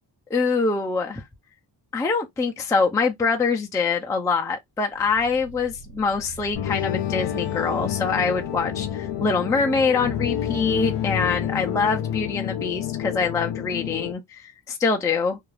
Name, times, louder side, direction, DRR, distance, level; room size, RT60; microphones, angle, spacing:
voice 1, 0.3-1.2 1.9-15.4, left 4 dB, 10° left, 0.3 m, -24 dB
sound 1, 4.9-10.0, right 3 dB, 60° right, 1.3 m, -43 dB
sound 2, 6.6-14.1, left 11 dB, 75° left, 0.6 m, -28 dB
2.5 x 2.3 x 3.1 m
wide cardioid pair, 170°, 42 cm